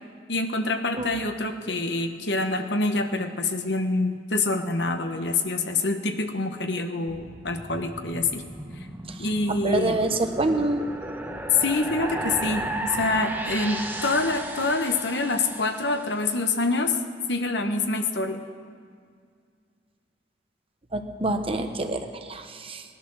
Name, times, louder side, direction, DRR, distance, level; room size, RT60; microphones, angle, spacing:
voice 1, 0.3-8.4 9.2-10.0 11.6-17.0 17.3-18.4, left 3 dB, 75° left, 6 dB, 1.3 m, -26 dB
sound 1, 7.1-16.4, right 1 dB, 10° right, 1.1 m, -35 dB
voice 2, 9.5-10.8 20.9-22.8, right 2 dB, 35° right, 7 dB, 1.0 m, -26 dB
19.0 x 11.5 x 6.4 m, 2.1 s
head